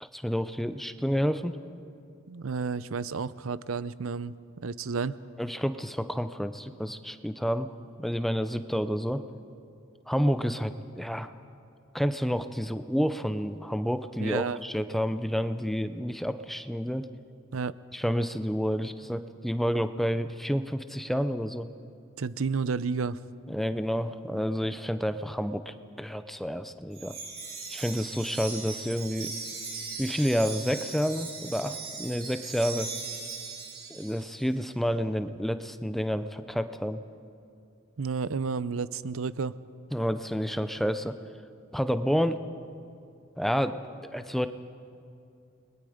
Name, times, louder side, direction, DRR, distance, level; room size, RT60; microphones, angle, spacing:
voice 1, 0.0-1.6 5.4-7.7 8.0-9.2 10.1-11.3 11.9-17.1 17.9-21.7 23.5-27.2 27.7-29.3 30.0-32.9 33.9-37.0 39.9-41.1 41.7-42.4 43.4-44.5, equal, ahead, 10 dB, 0.6 m, -29 dB
voice 2, 2.3-4.3 4.6-5.2 14.2-14.6 17.5-17.8 22.2-23.2 38.0-39.5, right 5 dB, 85° right, 16 dB, 0.6 m, -31 dB
Wind chime, 26.9-34.4, right 5 dB, 50° right, 6.6 m, -39 dB
30.0 x 22.0 x 5.1 m, 2.5 s
head